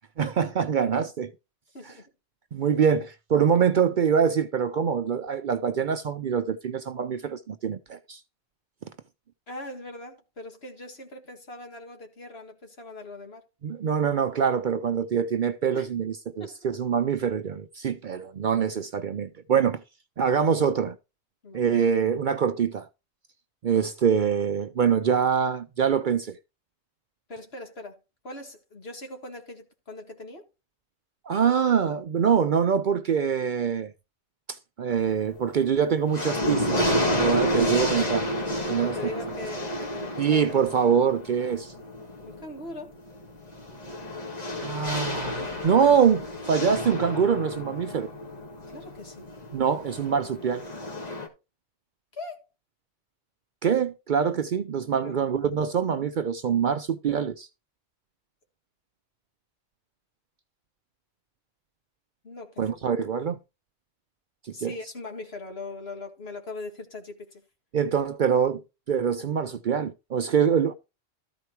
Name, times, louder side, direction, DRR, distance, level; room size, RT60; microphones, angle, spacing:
voice 1, 0.2-1.3 2.5-8.2 13.6-19.8 20.2-21.0 21.5-22.9 23.6-26.4 31.3-33.9 34.5-36.9 37.2-38.3 38.7-39.0 40.2-41.7 44.6-48.1 49.5-50.6 53.6-57.5 62.6-63.4 64.4-64.7 67.7-68.6 68.9-70.7, right 7 dB, 55° right, 0.6 m, -24 dB
voice 2, 1.7-2.1 9.5-13.4 15.7-15.9 16.4-16.8 21.4-21.7 27.3-28.0 28.2-30.5 38.7-40.6 42.2-42.9 48.7-49.3 52.1-52.5 55.0-55.4 62.2-62.8 64.5-67.4 70.5-70.6, left 2 dB, 65° left, 2.2 m, -41 dB
sound 1, 34.9-35.4 35.8-51.3, equal, 35° left, 2.0 m, -30 dB
13.5 x 4.5 x 4.5 m
omnidirectional pair, 1.2 m